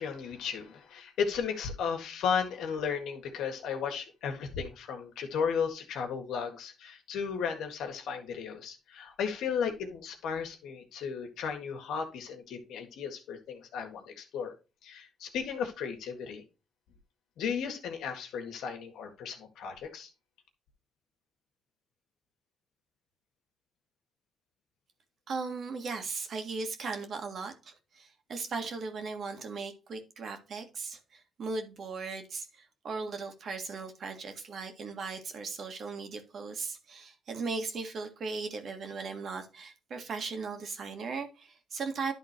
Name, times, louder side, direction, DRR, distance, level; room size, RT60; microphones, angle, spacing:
voice 1, 0.0-14.5 14.8-16.4 17.4-20.1, left 6 dB, 80° left, 1.7 m, -35 dB
voice 2, 25.3-42.1, right 4 dB, 55° right, 1.9 m, -38 dB
11.0 x 3.8 x 4.4 m
cardioid pair, 90°, 0 cm